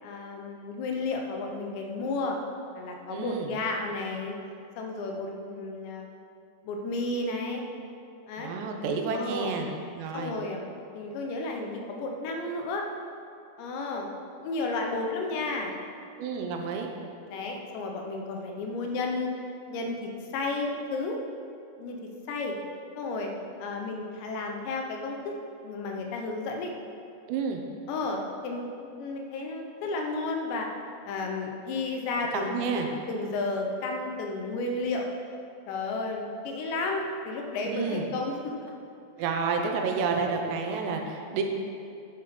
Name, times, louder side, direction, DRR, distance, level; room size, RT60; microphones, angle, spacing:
voice 1, 0.0-2.4 2.8-4.4 4.8-6.1 6.6-7.6 8.3-8.5 9.1-9.5 10.1-10.6 10.9-12.9 13.6-14.1 14.4-15.8 17.3-19.3 19.7-21.2 21.8-22.0 22.3-22.6 23.0-23.3 23.6-25.3 25.6-26.7 27.9-30.7 31.1-32.8 33.1-35.1 35.7-38.7, left 3 dB, 90° left, 2 dB, 3.3 m, -32 dB
voice 2, 3.1-3.5 8.4-9.7 9.9-10.4 16.2-16.9 27.3-27.6 32.3-32.9 37.6-38.0 39.2-41.4, right 5 dB, 80° right, 3 dB, 3.1 m, -30 dB
11.0 x 6.1 x 5.2 m, 2.6 s
omnidirectional pair, 4.9 m